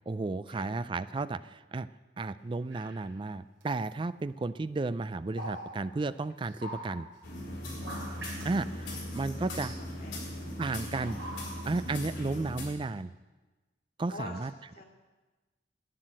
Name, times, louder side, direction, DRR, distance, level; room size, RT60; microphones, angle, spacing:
voice 1, 0.1-1.9 2.2-7.1 8.4-9.7 10.6-11.4 11.6-13.1 14.0-14.5, right 3 dB, 25° right, 14 dB, 0.3 m, -33 dB
sound 1, 2.7-3.1 3.6-3.9 4.8-7.3 7.7-8.7 9.6-9.8 10.9-11.9 12.2-12.3, right 1 dB, 70° right, 3.3 m, -44 dB
sound 2, 7.2-12.6, left 1 dB, 70° left, 4.8 m, -39 dB
voice 2, 7.5-8.0 8.3-9.3 9.6-10.2 10.7-10.8 14.1-14.8, left 2 dB, 50° left, 0 dB, 2.6 m, -48 dB
11.5 x 10.0 x 7.6 m, 1.2 s
head